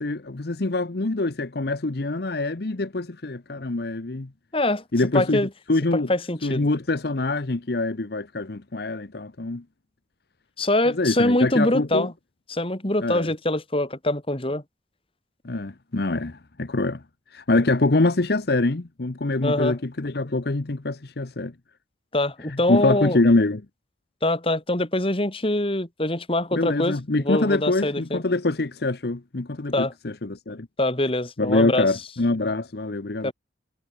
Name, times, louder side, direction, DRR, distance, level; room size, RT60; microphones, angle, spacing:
voice 1, 0.0-4.3 4.9-5.4 5.7-6.1 6.4-9.6 11.0-12.1 13.0-13.3 15.4-17.0 17.3-21.5 22.5-23.6 26.5-30.7 31.4-33.3, left 2 dB, 60° left, 0.9 m, -24 dB
voice 2, 4.5-4.8 5.1-5.5 5.9-6.7 10.6-12.1 12.5-14.6 19.4-19.8 22.1-23.2 24.2-28.2 29.7-29.9 30.8-31.9 33.2-33.3, left 1 dB, 30° left, 2.6 m, -24 dB
head